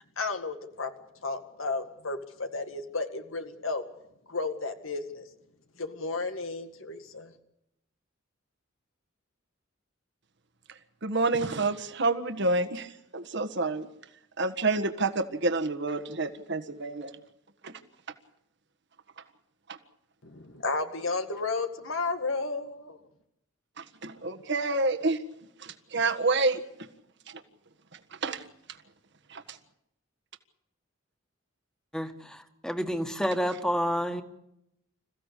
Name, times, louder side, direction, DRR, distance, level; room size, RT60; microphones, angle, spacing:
voice 1, 0.2-0.9 1.2-3.8 4.3-5.3 5.8-7.3 20.2-23.0, left 3 dB, 85° left, 7 dB, 2.0 m, -33 dB
voice 2, 11.0-13.9 14.4-17.1 17.6-17.7 19.7-19.8 23.8-25.2 25.6-26.6 28.2-28.4 29.3-29.4, right 3 dB, 60° right, 9 dB, 1.6 m, -28 dB
voice 3, 31.9-34.2, equal, 5° left, 7 dB, 1.9 m, -29 dB
27.0 x 15.5 x 8.4 m, 0.80 s
head